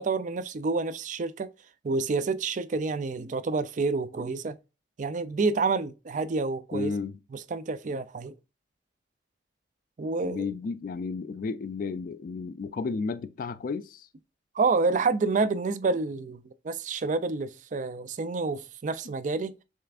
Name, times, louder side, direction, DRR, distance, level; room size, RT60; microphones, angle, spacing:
voice 1, 0.0-1.5 1.8-4.6 5.0-6.9 7.5-8.3 10.0-10.5 14.6-19.5, right 4 dB, 45° right, 0.4 m, -28 dB
voice 2, 6.7-7.2 10.2-14.1, left 4 dB, 50° left, 0.3 m, -33 dB
6.5 x 3.4 x 2.4 m
head